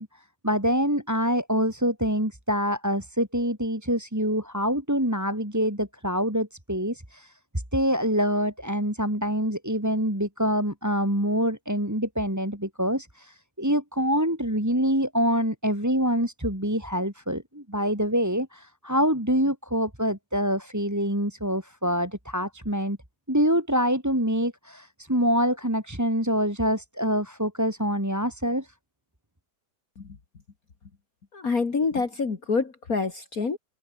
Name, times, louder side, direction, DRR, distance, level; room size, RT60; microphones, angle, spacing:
voice 1, 0.0-7.4 7.7-23.0 23.3-28.7, equal, 10° right, 4.4 m, -25 dB
voice 2, 31.3-33.6, left 4 dB, 45° left, 2.6 m, -27 dB
omnidirectional pair, 2.1 m